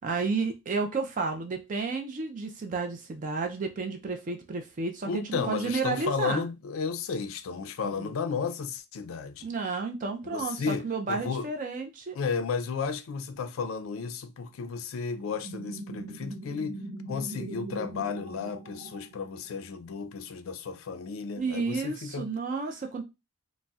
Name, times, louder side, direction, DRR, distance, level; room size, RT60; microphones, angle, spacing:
voice 1, 0.0-6.5 8.0-8.1 9.4-12.2 21.4-23.0, right 4 dB, 40° right, 0.4 m, -31 dB
voice 2, 5.1-9.5 10.2-11.5 12.1-16.8 17.1-22.3, left 5 dB, 70° left, 0.4 m, -33 dB
sound 1, 15.2-19.6, right 2 dB, 60° right, 0.7 m, -41 dB
3.9 x 2.0 x 2.3 m
head